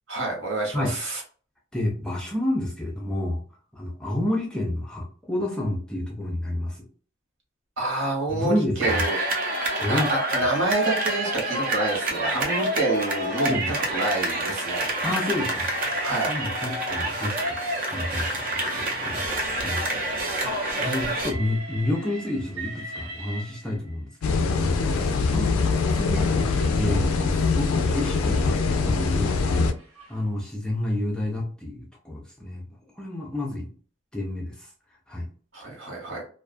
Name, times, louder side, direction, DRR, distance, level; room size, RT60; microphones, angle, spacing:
voice 1, 0.1-1.2 7.8-9.2 9.9-13.5 13.9-14.9 16.0-16.3 35.5-36.2, right 2 dB, 65° right, -1 dB, 1.2 m, -28 dB
voice 2, 1.7-3.4 3.7-6.8 8.3-9.0 9.8-10.1 13.5-13.7 15.0-19.9 20.5-29.7 30.1-32.6 33.0-33.7 34.1-34.7 35.1-35.3, left 1 dB, 5° left, -1 dB, 0.4 m, -30 dB
sound 1, 8.8-21.3, right 1 dB, 45° right, 0.6 m, -27 dB
Train, 20.7-24.1 25.0-30.2, right 2 dB, 85° right, 0.8 m, -43 dB
sound 2, 24.2-29.7, left 4 dB, 90° left, 0.3 m, -23 dB
2.4 x 2.3 x 2.4 m, 0.42 s
head